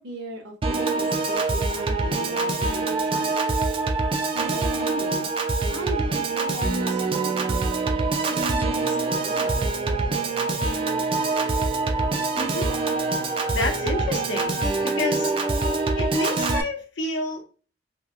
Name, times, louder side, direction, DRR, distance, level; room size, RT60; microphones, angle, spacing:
voice 1, 0.0-3.4 4.3-5.3 5.7-7.6 8.3-9.6, right 1 dB, 60° right, 0 dB, 0.8 m, -37 dB
Piano / Organ, 0.6-16.6, right 3 dB, 30° right, 0.4 m, -25 dB
voice 2, 12.3-12.8 13.5-14.6 14.8-15.3 16.0-17.4, left 2 dB, 70° left, 3 dB, 0.9 m, -29 dB
2.8 x 2.7 x 2.4 m, 0.38 s
head